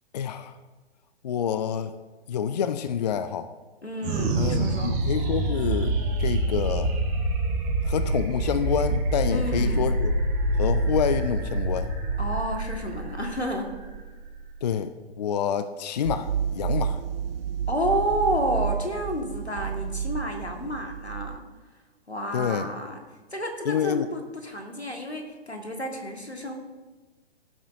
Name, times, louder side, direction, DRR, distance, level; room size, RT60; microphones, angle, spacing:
voice 1, 0.1-0.5 1.2-1.9 2.3-3.5 4.4-6.9 7.8-10.1 10.6-11.9 14.6-14.9 15.2-17.0 22.3-22.7 23.7-24.1, left 8 dB, 40° left, 13 dB, 0.4 m, -27 dB
voice 2, 3.8-5.0 9.3-9.9 12.2-13.7 17.7-21.4 22.1-23.0 23.3-26.5, equal, 90° left, 3 dB, 1.7 m, -30 dB
sound 1, 4.0-14.7, right 2 dB, 25° right, 1.7 m, -26 dB
sound 2, 16.0-21.4, right 8 dB, 65° right, 0.5 m, -30 dB
16.0 x 8.0 x 2.6 m, 1.3 s
figure-of-eight pair, 120°, 32 cm